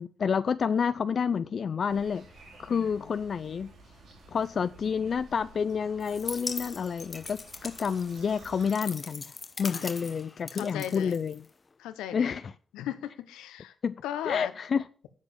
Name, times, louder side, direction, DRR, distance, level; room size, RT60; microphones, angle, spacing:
voice 1, 0.0-2.3 2.6-3.7 4.3-9.2 9.6-11.4 12.1-12.4 13.8-13.9 14.3-14.8, left 6 dB, 60° left, 0.4 m, -29 dB
sound 1, 1.9-8.8, right 3 dB, 75° right, 2.6 m, -53 dB
voice 2, 2.7-3.1 9.7-10.1 10.5-11.2 11.8-12.4 12.7-13.7 14.0-14.5, left 11 dB, 90° left, 0.7 m, -37 dB
sound 2, 6.0-11.7, left 4 dB, 40° left, 0.9 m, -41 dB
7.5 x 7.3 x 7.4 m
supercardioid pair, 45°, 0 cm